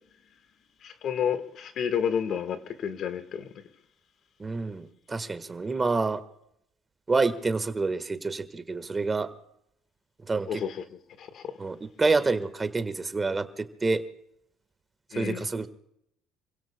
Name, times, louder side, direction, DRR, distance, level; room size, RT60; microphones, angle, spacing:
voice 1, 0.8-3.5 10.5-10.8 11.2-11.5 15.1-15.4, left 8 dB, 60° left, 1.5 m, -30 dB
voice 2, 4.4-6.2 7.1-9.3 10.3-10.6 11.6-14.0 15.1-15.7, right 3 dB, 25° right, 1.4 m, -28 dB
29.0 x 16.5 x 2.2 m
cardioid pair, 100°, 0 cm